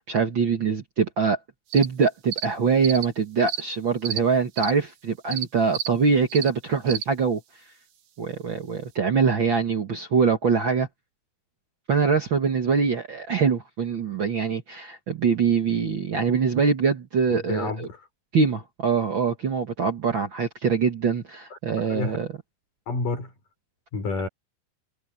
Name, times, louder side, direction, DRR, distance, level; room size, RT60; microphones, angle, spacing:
voice 1, 0.1-1.4 1.7-7.4 8.2-10.9 11.9-17.9 18.3-22.3, right 5 dB, 65° right, 1.2 m, -23 dB
sound 1, 1.7-1.9 2.3-2.5 2.8-3.1 3.5-3.6 4.1-4.2 4.6-4.7 5.3-5.5 5.7-5.9 6.3-6.5 6.9-7.1, right 10 dB, 85° right, 4.2 m, -30 dB
voice 2, 17.3-18.1 21.9-22.2 22.9-23.3 23.9-24.3, left 3 dB, 50° left, 6.7 m, -29 dB
omnidirectional pair, 4.7 m